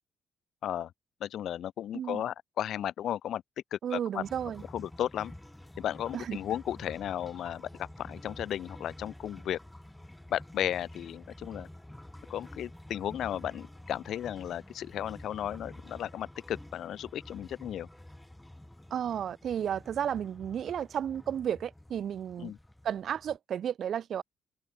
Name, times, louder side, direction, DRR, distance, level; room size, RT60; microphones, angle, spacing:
voice 1, 1.2-3.4 3.7-4.2 4.7-5.3 5.8-9.6 10.3-11.7 12.3-17.9 22.4-22.6, left 11 dB, 70° left, 1.4 m, -34 dB
voice 2, 3.8-4.6 6.1-6.4 18.9-22.5 22.8-24.2, right 9 dB, 60° right, 2.5 m, -33 dB
sound 1, 4.2-23.4, left 1 dB, 5° left, 4.1 m, -49 dB
cardioid pair, 100°, 0 cm